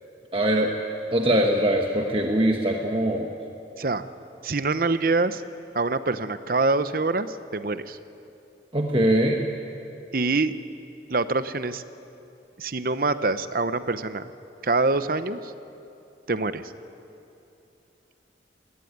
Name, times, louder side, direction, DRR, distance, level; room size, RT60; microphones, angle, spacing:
voice 1, 0.3-0.7 1.1-3.3 8.7-9.5, right 1 dB, 30° right, 2 dB, 1.2 m, -22 dB
voice 2, 4.4-5.4 5.7-8.0 10.1-10.5 11.1-11.8 12.6-14.3 14.6-15.5 16.3-16.7, right 3 dB, 50° right, 12 dB, 0.8 m, -25 dB
20.0 x 18.5 x 9.4 m, 2.7 s
head